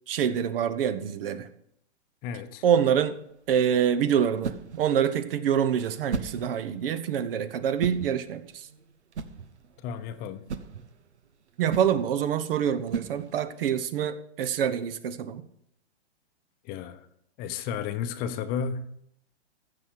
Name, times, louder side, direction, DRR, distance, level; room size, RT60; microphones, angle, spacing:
voice 1, 0.1-1.5 2.6-3.2 3.5-8.7 11.6-15.4, right 8 dB, 55° right, 1.1 m, -26 dB
voice 2, 2.2-2.6 9.8-10.4 16.6-17.1 17.4-19.0, left 7 dB, 30° left, 0.8 m, -33 dB
sound 1, 3.1-13.7, right 5 dB, 85° right, 1.1 m, -39 dB
15.5 x 5.9 x 6.5 m
hypercardioid pair, 130°, 33 cm